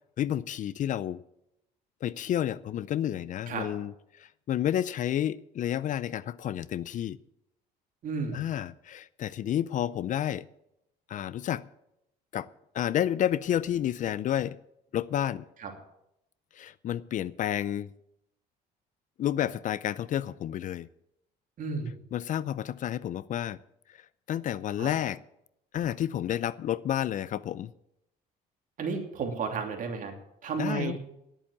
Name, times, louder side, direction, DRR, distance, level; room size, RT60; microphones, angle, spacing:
voice 1, 0.2-1.2 2.0-7.2 8.3-10.4 11.1-11.6 12.3-12.5 12.7-14.6 14.9-15.5 16.5-17.9 19.2-20.9 22.1-23.6 23.9-24.0 24.3-25.2 25.7-27.7 30.6-31.0, left 11 dB, 50° left, 19 dB, 0.5 m, -30 dB
voice 2, 8.0-8.4 15.6-15.7 21.6-21.9 24.8-24.9 28.8-30.1 30.4-31.0, right 4 dB, 50° right, 2 dB, 2.9 m, -32 dB
10.5 x 8.7 x 8.4 m, 0.81 s
cardioid pair, 110°, 17 cm